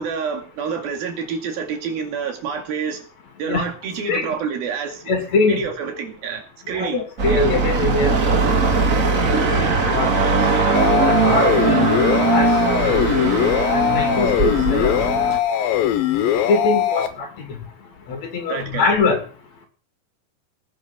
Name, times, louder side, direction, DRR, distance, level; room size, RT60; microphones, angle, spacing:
voice 1, 0.0-3.1 3.4-5.1 5.5-7.5 18.5-18.9, right 6 dB, 85° right, 4.1 m, -28 dB
voice 2, 5.1-5.6 6.7-8.2 9.3-10.1 10.9-12.5 12.8-13.3 13.7-15.0 16.3-17.3 18.1-19.2, left 4 dB, 50° left, 3.5 m, -23 dB
sound 1, 7.2-15.4, right 4 dB, 65° right, 0.8 m, -19 dB
sound 2, 10.7-17.1, left 11 dB, 85° left, 2.6 m, -20 dB
19.5 x 8.5 x 6.0 m
omnidirectional pair, 4.1 m